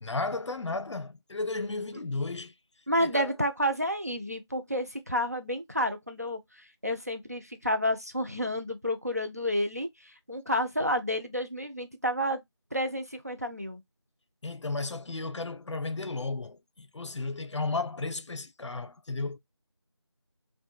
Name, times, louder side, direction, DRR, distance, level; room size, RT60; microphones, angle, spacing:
voice 1, 0.0-2.5 3.0-3.3 14.4-19.4, left 3 dB, 85° left, 0.5 m, -34 dB
voice 2, 2.9-12.4 12.7-13.8, equal, 35° right, 0.4 m, -30 dB
2.9 x 2.1 x 2.3 m
figure-of-eight pair, 175°, 15 cm